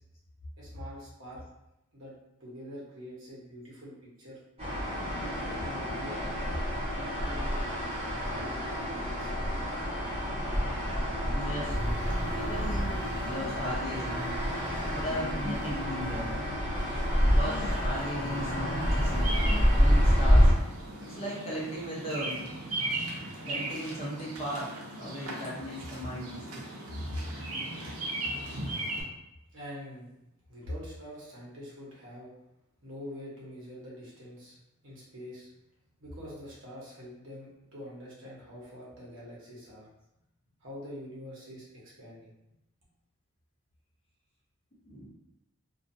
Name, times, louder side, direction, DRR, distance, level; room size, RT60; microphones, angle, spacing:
voice 1, 0.6-1.4 1.9-2.1 2.4-4.4 5.1-6.6 7.2-7.6 8.2-9.5 29.5-30.1 30.5-32.3 32.8-34.6 34.8-35.5 36.0-39.9 40.6-42.3, equal, 60° right, -6 dB, 1.0 m, -45 dB
sound 1, 4.6-20.5, equal, 30° right, 1.0 m, -28 dB
voice 2, 11.3-11.8 12.3-14.2 14.9-16.4 16.9-19.1 19.7-20.5 21.0-22.5 23.4-26.6 44.9-45.1, equal, 30° left, -6 dB, 0.8 m, -37 dB
sound 2, 11.7-19.7, left 1 dB, 75° left, 0.6 m, -41 dB
Bird vocalization bird call bird song, 18.9-29.0, right 2 dB, 85° right, 0.7 m, -38 dB
2.6 x 2.5 x 2.6 m, 0.88 s
head